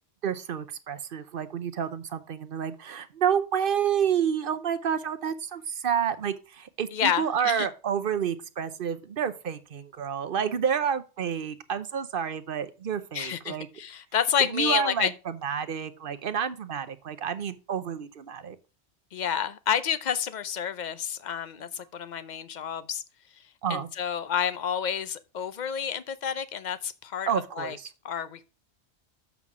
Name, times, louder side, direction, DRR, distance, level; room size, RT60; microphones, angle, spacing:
voice 1, 0.2-13.7 14.5-18.6 23.6-23.9 27.3-27.9, right 8 dB, 55° right, 0.9 m, -29 dB
voice 2, 6.9-7.7 13.1-15.1 19.1-23.0 23.3-23.4 23.7-27.8 28.0-28.4, left 8 dB, 45° left, 0.7 m, -29 dB
7.3 x 5.6 x 4.7 m
omnidirectional pair, 1.2 m